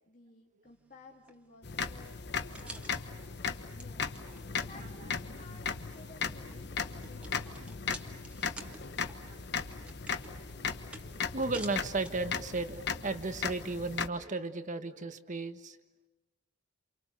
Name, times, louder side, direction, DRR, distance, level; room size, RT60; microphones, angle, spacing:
voice 1, 0.0-2.9 3.5-4.1 4.6-8.2, left 2 dB, 45° left, -1 dB, 2.3 m, -56 dB
sound 1, 0.6-12.7, right 1 dB, 5° right, 1.8 m, -53 dB
sound 2, 1.6-14.1, left 5 dB, 60° left, 1.2 m, -37 dB
voice 2, 11.2-15.8, right 3 dB, 40° right, 9 dB, 1.5 m, -35 dB
29.0 x 28.5 x 6.8 m, 1.1 s
head